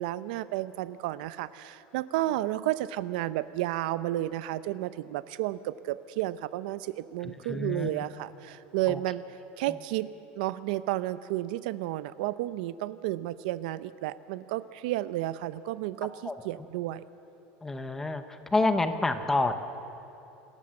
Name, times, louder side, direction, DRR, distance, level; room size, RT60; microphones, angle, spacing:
voice 1, 0.0-10.1 10.4-17.0, right 15 dB, 70° right, 15 dB, 0.6 m, -32 dB
voice 2, 7.5-7.9 16.3-16.4 17.6-18.2 18.5-19.5, left 2 dB, 10° left, 9 dB, 0.8 m, -27 dB
27.5 x 14.0 x 7.6 m, 2.9 s
cardioid pair, 175°, 5 cm